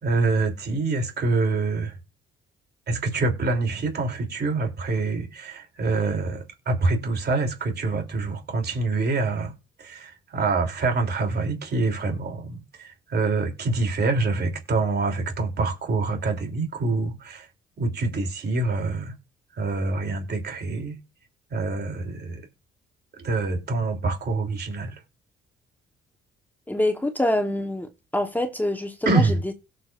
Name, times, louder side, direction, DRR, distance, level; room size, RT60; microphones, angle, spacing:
voice 1, 0.0-1.9 2.9-9.5 9.8-17.5 17.8-19.1 19.5-21.0 21.5-22.4 23.2-25.0 29.0-29.5, right 3 dB, 55° right, 3.2 m, -26 dB
voice 2, 26.7-29.5, left 1 dB, 10° left, 1.2 m, -26 dB
17.0 x 6.7 x 2.6 m
cardioid pair, 90°, 20 cm